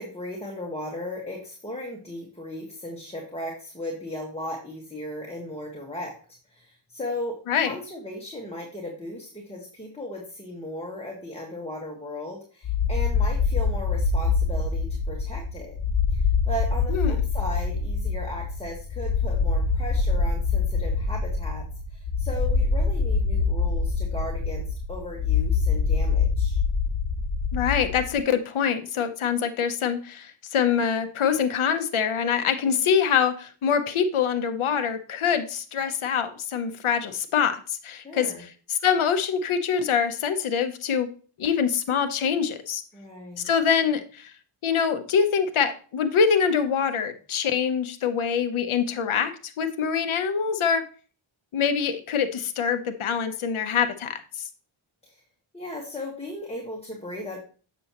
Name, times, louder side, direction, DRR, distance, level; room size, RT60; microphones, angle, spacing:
voice 1, 0.0-6.2 6.5-15.7 16.1-21.7 21.9-26.6 32.6-32.9 38.0-38.4 42.9-43.5 55.0-55.2 55.5-57.4, left 1 dB, 10° left, -2 dB, 1.5 m, -36 dB
sound 1, 12.6-28.2, left 4 dB, 50° left, 0.8 m, -25 dB
voice 2, 27.5-38.3 38.7-41.1 41.4-42.8 43.4-44.3 44.6-50.8 51.5-54.2, left 7 dB, 85° left, 8 dB, 0.8 m, -24 dB
7.5 x 6.1 x 2.9 m, 0.39 s
wide cardioid pair, 85°, 48 cm